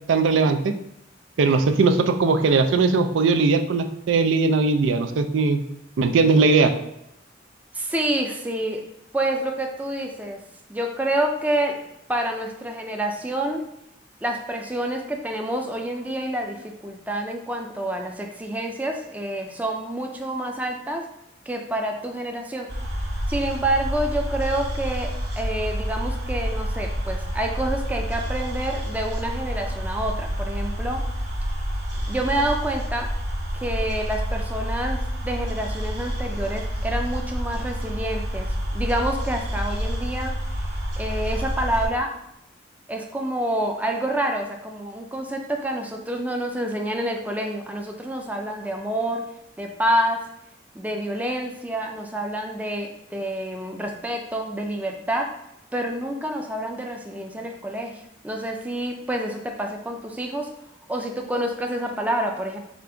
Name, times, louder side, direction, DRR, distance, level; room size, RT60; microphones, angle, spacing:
voice 1, 0.1-0.7 1.4-5.6 6.0-6.7, right 4 dB, 85° right, 8 dB, 0.4 m, -19 dB
voice 2, 7.7-8.8 9.1-10.4 10.7-11.7 12.1-13.6 14.2-21.0 21.5-22.7 23.3-25.1 25.4-31.0 32.1-33.1 33.5-38.5 38.7-40.3 41.0-42.1 42.9-49.2 49.6-50.2 50.7-55.3 55.7-60.5 60.9-62.6, right 1 dB, 10° right, 1 dB, 0.4 m, -28 dB
sound 1, 22.7-41.9, equal, 70° right, 1.1 m, -28 dB
5.1 x 2.5 x 3.4 m, 0.81 s
head